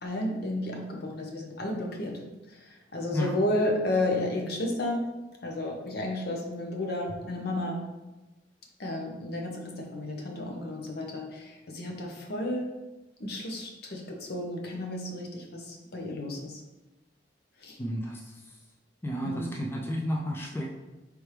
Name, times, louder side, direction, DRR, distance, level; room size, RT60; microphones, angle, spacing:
voice 1, 0.0-2.2 2.5-5.1 5.4-7.8 8.8-12.7 13.2-16.6 17.6-17.8 19.2-19.6, left 1 dB, 60° left, 1 dB, 0.8 m, -32 dB
voice 2, 17.8-18.3 19.0-20.7, equal, 15° left, -1 dB, 0.4 m, -32 dB
4.5 x 3.4 x 3.2 m, 1.1 s
head